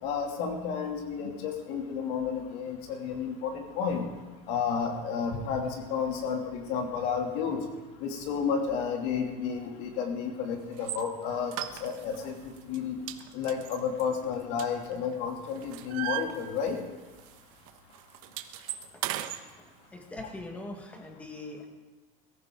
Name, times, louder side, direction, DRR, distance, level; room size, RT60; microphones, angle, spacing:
voice 1, 0.0-4.0 4.5-7.6 8.0-11.5 11.8-13.0 13.3-16.8, left 6 dB, 65° left, 2 dB, 2.9 m, -31 dB
sound 1, 10.8-11.0 11.5-12.2 12.6-12.8 13.1-15.1 15.5-16.9 17.2-17.4 17.7-19.4, right 14 dB, 90° right, 1.2 m, -37 dB
voice 2, 19.9-21.7, left 2 dB, 10° left, 3 dB, 1.6 m, -41 dB
22.0 x 14.5 x 3.9 m, 1.2 s
cardioid pair, 180°, 17 cm